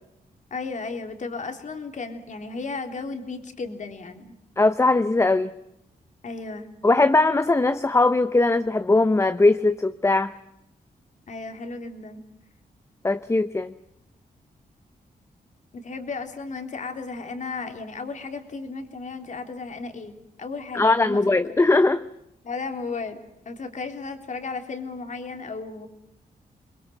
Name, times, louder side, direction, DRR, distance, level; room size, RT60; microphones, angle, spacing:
voice 1, 0.5-4.3 6.2-6.7 11.3-12.2 15.7-21.2 22.4-23.2 23.4-25.9, left 4 dB, 50° left, 6 dB, 3.4 m, -34 dB
voice 2, 4.6-5.5 6.8-10.3 13.0-13.7 20.7-22.0, left 2 dB, 15° left, 11 dB, 0.8 m, -20 dB
28.5 x 22.5 x 6.0 m, 0.85 s
wide cardioid pair, 115°, 16 cm